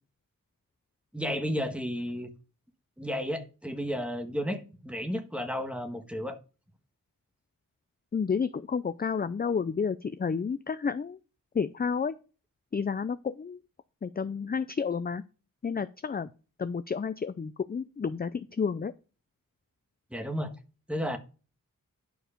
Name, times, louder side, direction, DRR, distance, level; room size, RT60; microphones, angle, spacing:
voice 1, 1.1-2.3 3.0-6.4 20.1-20.5 20.9-21.2, equal, 5° right, 1.4 m, -32 dB
voice 2, 8.1-11.2 11.5-12.1 12.7-13.6 14.0-15.2 15.6-16.3 16.6-18.9, left 6 dB, 30° left, 0.4 m, -30 dB
11.0 x 4.7 x 5.1 m
wide cardioid pair, 100°, 34 cm